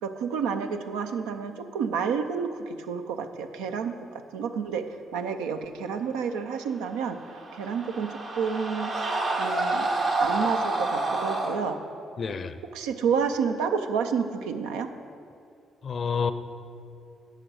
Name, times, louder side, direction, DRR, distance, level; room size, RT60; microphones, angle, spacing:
voice 1, 0.0-8.9 9.4-9.9 10.2-11.8 12.7-14.9, right 6 dB, 75° right, 7 dB, 0.5 m, -30 dB
sound 1, 7.1-11.6, right 2 dB, 60° right, 1.5 m, -28 dB
voice 2, 12.2-12.6 15.8-16.3, left 5 dB, 50° left, 12 dB, 0.5 m, -28 dB
10.5 x 6.7 x 4.8 m, 2.5 s
hypercardioid pair, 45°, 0 cm